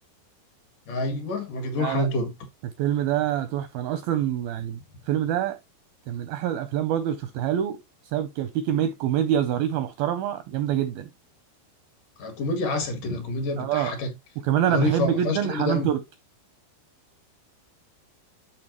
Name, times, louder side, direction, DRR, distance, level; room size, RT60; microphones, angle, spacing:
voice 1, 0.9-2.3 12.2-14.1 14.7-15.9, left 2 dB, 55° left, 2.9 m, -27 dB
voice 2, 1.8-2.1 2.8-4.8 5.1-5.6 6.1-7.8 8.0-11.1 13.6-13.9 14.4-16.0, right 10 dB, 80° right, 2.1 m, -26 dB
12.0 x 4.3 x 3.0 m
omnidirectional pair, 5.0 m